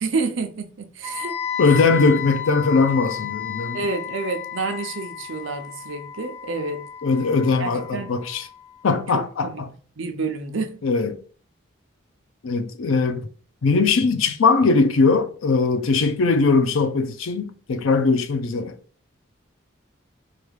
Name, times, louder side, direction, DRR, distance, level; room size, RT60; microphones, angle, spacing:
voice 1, 0.0-1.4 3.7-6.9 7.6-8.1 9.1-9.6 10.0-10.8, right 4 dB, 70° right, 0.6 m, -29 dB
Wind instrument woodwind instrument, 1.0-9.0, left 9 dB, 10° right, 1.0 m, -33 dB
voice 2, 1.6-3.8 7.0-8.5 8.8-9.7 10.8-11.2 12.4-13.3 13.6-18.8, left 4 dB, 85° left, 0.5 m, -20 dB
4.7 x 2.4 x 3.3 m
head